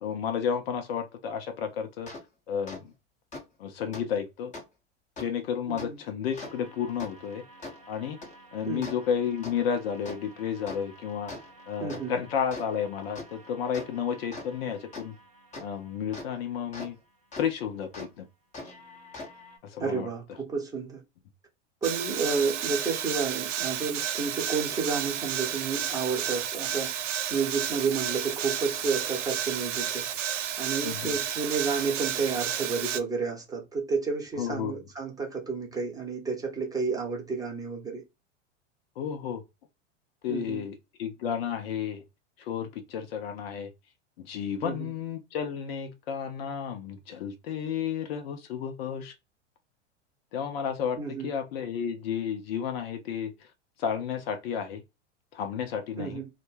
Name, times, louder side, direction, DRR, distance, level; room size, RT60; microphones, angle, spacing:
voice 1, 0.0-2.1 2.5-2.9 3.6-4.5 5.2-7.4 7.9-8.2 8.5-11.3 11.7-15.1 15.6-17.0 17.4-18.3 19.7-20.1 30.8-31.2 34.4-34.8 39.0-39.4 40.2-40.7 41.0-42.0 42.4-43.7 44.2-49.1 50.3-53.3 53.8-54.8 55.3-56.2, left 7 dB, 55° left, 0.6 m, -32 dB
sound 1, 2.1-2.2 2.7-2.8 3.3-3.4 3.9-4.0 4.5-4.6 5.2-5.3 5.8-5.9 6.3-16.9 17.3-17.4 17.9-18.1 18.5-19.6, left 2 dB, 20° left, 0.9 m, -44 dB
voice 2, 11.8-12.1 19.8-21.0 21.8-27.0 27.3-30.1 30.6-38.0 40.3-40.6 44.6-44.9 51.0-51.3 56.0-56.3, right 5 dB, 10° right, 0.8 m, -31 dB
sound 2, 21.8-33.0, right 9 dB, 75° right, 0.5 m, -31 dB
2.1 x 2.1 x 3.1 m
figure-of-eight pair, 95°, 36 cm